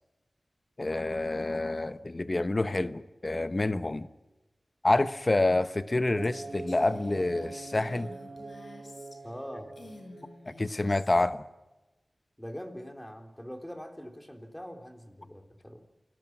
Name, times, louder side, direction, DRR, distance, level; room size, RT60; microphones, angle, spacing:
voice 1, 0.8-4.1 4.8-8.1 10.6-11.4, left 2 dB, 40° left, 12 dB, 0.9 m, -28 dB
Female speech woman speaking, 6.2-9.4 9.7-11.3, left 2 dB, 75° left, 5.8 m, -51 dB
sound 1, 6.2-10.9, right 3 dB, 55° right, 2.0 m, -43 dB
voice 2, 9.2-9.7 12.4-15.8, equal, 10° left, 4 dB, 3.9 m, -43 dB
29.0 x 19.0 x 6.1 m, 1.1 s
wide cardioid pair, 55°, 0 cm